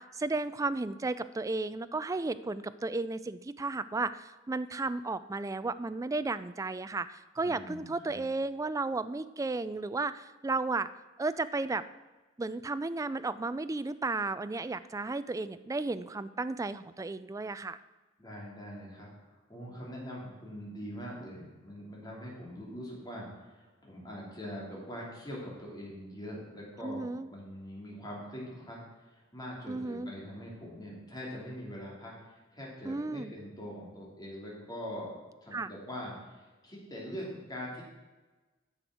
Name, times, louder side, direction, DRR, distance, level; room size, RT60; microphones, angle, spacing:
voice 1, 0.0-10.9 11.2-11.8 12.4-17.8 26.8-27.3 29.7-30.1 32.9-33.3 35.5-35.7, right 3 dB, 15° right, 13 dB, 0.3 m, -34 dB
voice 2, 7.4-8.2 18.2-35.1 35.4-37.8, equal, 20° left, -4 dB, 3.0 m, -43 dB
9.6 x 6.8 x 6.2 m, 1.2 s
head